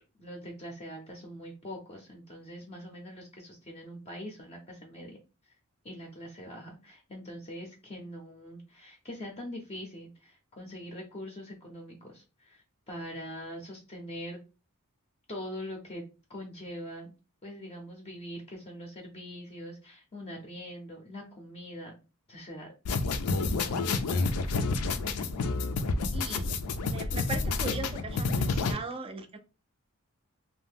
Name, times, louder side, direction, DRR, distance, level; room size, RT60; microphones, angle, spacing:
voice 1, 0.2-5.2 5.8-14.4 15.3-16.0 16.3-17.1 17.4-21.9 22.3-22.7 23.6-24.5, equal, 30° left, 0.5 m, -43 dB
sound 1, 22.8-28.7, left 3 dB, 80° left, 0.4 m, -29 dB
voice 2, 26.1-26.5 26.8-29.4, right 3 dB, 25° right, 0.4 m, -38 dB
2.6 x 2.1 x 3.4 m
head